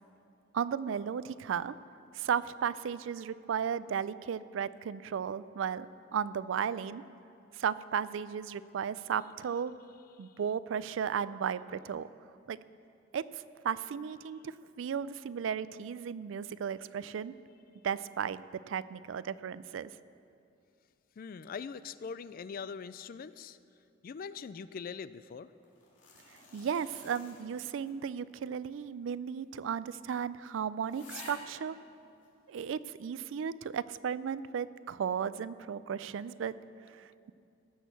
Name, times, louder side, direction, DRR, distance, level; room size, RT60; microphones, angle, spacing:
voice 1, 0.5-1.7 2.1-5.9 6.1-7.0 7.5-9.7 10.2-12.1 12.5-12.6 13.1-17.3 17.8-19.9 26.5-31.8 32.5-36.5 36.9-37.3, right 7 dB, 75° right, 17 dB, 0.4 m, -35 dB
voice 2, 21.2-23.6 24.0-25.5, left 6 dB, 50° left, 15 dB, 0.3 m, -42 dB
sound 1, 25.6-28.1 28.4-28.5 29.4-29.5 29.8-29.9 30.5-30.6 30.8-31.5 32.2-32.3, left 3 dB, 70° left, 2.7 m, -51 dB
17.0 x 6.4 x 6.8 m, 2.5 s
head